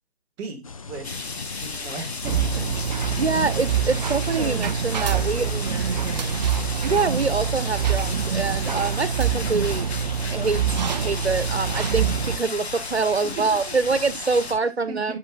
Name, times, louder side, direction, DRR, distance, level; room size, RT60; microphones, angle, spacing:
voice 1, 0.4-1.1 1.6-2.8 3.1-3.2 4.4-6.5 13.2-13.8 14.9-15.2, right 3 dB, 10° right, 1.2 m, -37 dB
sound 1, 0.6-14.6, left 5 dB, 35° left, 0.4 m, -40 dB
sound 2, 1.0-14.5, left 3 dB, 80° left, 1.7 m, -35 dB
sound 3, 2.2-12.4, right 7 dB, 45° right, 0.5 m, -25 dB
voice 2, 3.2-5.5 6.8-9.9 10.3-15.2, right 4 dB, 85° right, 1.1 m, -25 dB
10.5 x 6.2 x 2.4 m
figure-of-eight pair, 145°, 32 cm